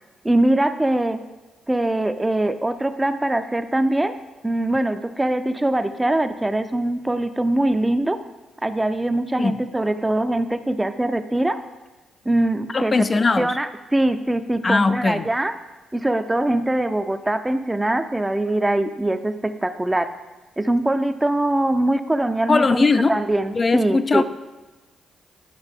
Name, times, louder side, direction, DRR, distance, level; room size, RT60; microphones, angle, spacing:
voice 1, 0.2-1.2 1.7-4.1 4.4-8.2 8.6-11.6 12.2-12.9 13.4-15.5 15.9-20.1 20.6-24.2, right 1 dB, 15° right, 9 dB, 0.6 m, -22 dB
voice 2, 12.7-13.6 14.6-15.3 22.5-23.2 23.5-24.2, left 3 dB, 40° left, 11 dB, 0.4 m, -19 dB
10.0 x 5.5 x 3.5 m, 1.1 s
hypercardioid pair, 45°, 0 cm